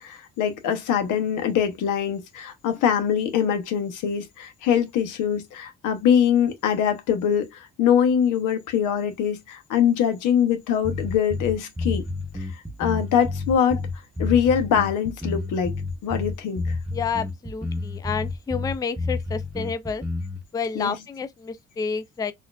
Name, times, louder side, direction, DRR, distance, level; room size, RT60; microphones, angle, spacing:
voice 1, 0.0-7.5 7.8-12.0 12.8-13.8 14.2-16.8 20.7-21.0, left 8 dB, 90° left, 0.8 m, -23 dB
sound 1, 10.8-20.4, left 3 dB, 5° right, 0.8 m, -30 dB
voice 2, 16.9-20.0 20.5-22.3, left 5 dB, 15° left, 0.3 m, -29 dB
4.2 x 2.5 x 2.3 m
cardioid pair, 90°, 30 cm